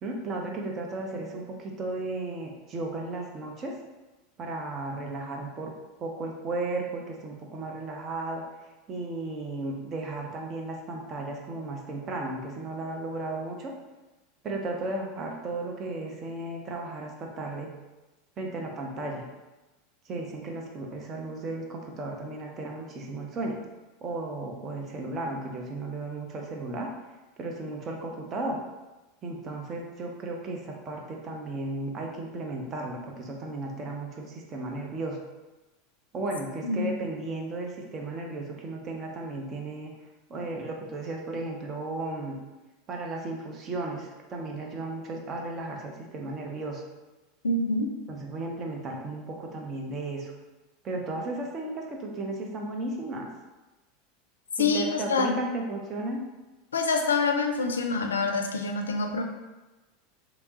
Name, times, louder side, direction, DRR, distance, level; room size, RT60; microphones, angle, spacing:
voice 1, 0.0-3.7 4.4-5.7 6.0-8.4 8.9-13.7 14.4-17.7 18.4-19.3 20.1-23.6 24.0-26.9 27.4-28.6 29.2-35.2 36.1-39.9 40.3-42.4 42.9-46.8 48.1-50.3 50.8-53.3 54.6-56.2, right 2 dB, 35° right, 0 dB, 0.7 m, -34 dB
voice 2, 47.4-47.9 54.6-55.4 56.7-59.2, left 3 dB, 80° left, 4 dB, 0.4 m, -26 dB
3.4 x 2.9 x 2.8 m, 1.1 s
figure-of-eight pair, 85°, 0 cm